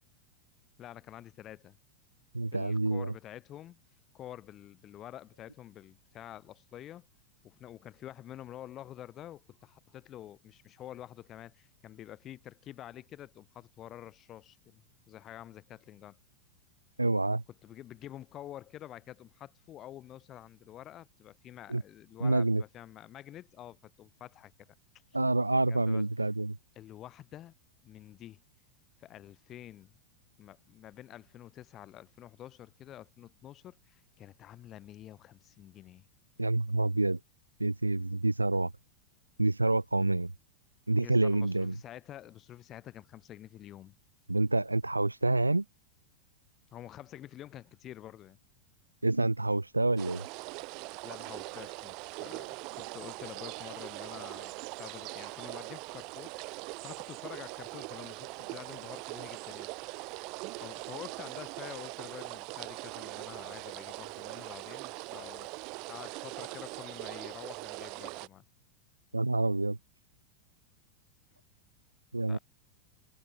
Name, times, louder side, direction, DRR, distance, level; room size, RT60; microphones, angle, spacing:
voice 1, 0.8-1.8 2.5-3.8 4.1-7.1 7.4-14.8 15.1-16.2 17.6-24.7 25.7-26.0 26.8-27.5 27.8-28.4 29.0-29.9 30.4-36.1 41.0-43.9 46.7-48.4 51.0-59.7 60.6-65.5 65.9-68.4 72.3-72.4, left 12 dB, 30° left, 4.0 m, -48 dB
voice 2, 2.3-3.1 17.0-17.4 21.7-21.8 22.2-22.6 25.1-26.6 36.4-37.2 37.6-38.7 39.4-40.3 40.9-41.7 44.3-45.6 49.0-50.2 69.1-69.8 72.1-72.4, right 2 dB, 85° right, 0.9 m, -27 dB
sound 1, 50.0-68.3, right 28 dB, 45° right, 2.0 m, -42 dB
figure-of-eight pair, 90°, 0 cm